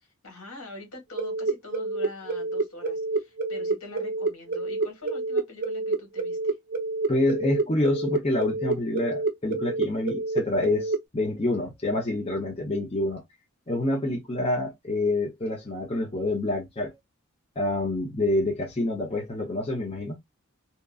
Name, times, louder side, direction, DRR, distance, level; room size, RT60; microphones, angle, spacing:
voice 1, 0.2-6.6, left 2 dB, 75° left, 1.5 m, -44 dB
sound 1, 1.2-11.0, right 3 dB, 40° right, 0.6 m, -28 dB
voice 2, 7.1-13.2 13.7-16.9 17.6-20.2, left 2 dB, 25° left, 0.7 m, -27 dB
2.8 x 2.4 x 2.3 m
head